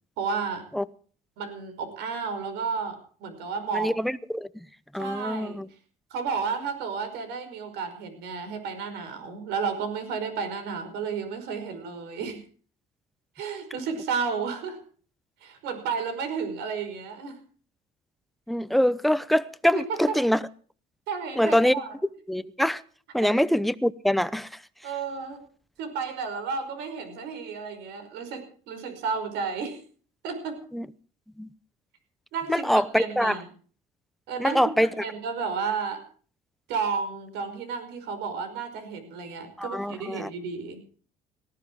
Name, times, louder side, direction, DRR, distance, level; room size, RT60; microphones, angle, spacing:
voice 1, 0.2-0.6 1.4-3.9 4.9-5.6 6.1-12.4 13.3-14.8 15.4-17.4 19.7-20.2 21.1-21.9 23.2-23.3 24.8-25.4 25.8-29.8 30.2-30.6 32.3-33.5 34.3-34.6 35.0-36.0 36.7-40.8, right 5 dB, 90° right, 5.3 m, -32 dB
voice 2, 3.7-4.5 4.9-5.7 18.5-20.4 21.4-21.7 22.3-22.8 23.1-24.5 30.7-30.9 31.4-31.5 32.5-33.4 34.4-34.9 39.6-40.3, equal, ahead, 0.8 m, -24 dB
18.5 x 14.5 x 4.6 m
cardioid pair, 110°, 17 cm